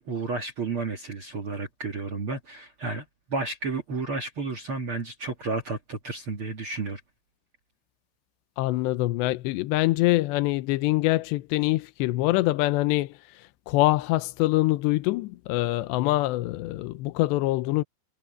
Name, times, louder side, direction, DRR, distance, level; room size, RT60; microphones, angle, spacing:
voice 1, 0.0-7.0, right 3 dB, 65° right, 1.3 m, -32 dB
voice 2, 8.6-13.1 13.7-17.8, left 18 dB, 80° left, 2.9 m, -24 dB
omnidirectional pair, 5.3 m